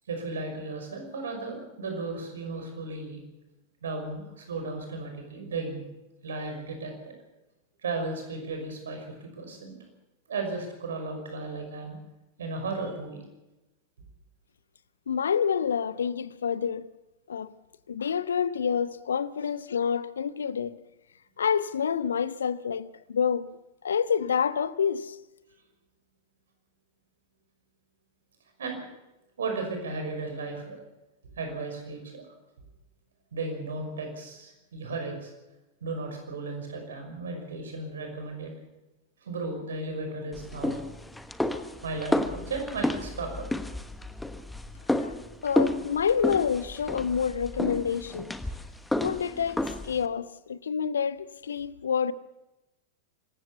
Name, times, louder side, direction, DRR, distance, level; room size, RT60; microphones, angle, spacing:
voice 1, 0.1-3.2 3.8-5.8 6.2-7.1 7.8-9.8 10.3-11.9 12.4-13.2 28.6-28.8 29.4-30.8 31.4-32.3 33.3-35.3 35.8-38.5 39.2-40.8 41.8-43.5, right 3 dB, 65° right, 5.7 m, -35 dB
voice 2, 15.1-16.9 17.3-17.5 17.9-20.8 21.4-23.5 23.8-25.2 45.0-45.1 45.4-48.3 49.0-52.1, left 7 dB, 70° left, 0.7 m, -28 dB
sound 1, 40.3-50.1, left 1 dB, 5° left, 1.3 m, -31 dB
25.5 x 14.5 x 7.0 m
figure-of-eight pair, 90°, 0 cm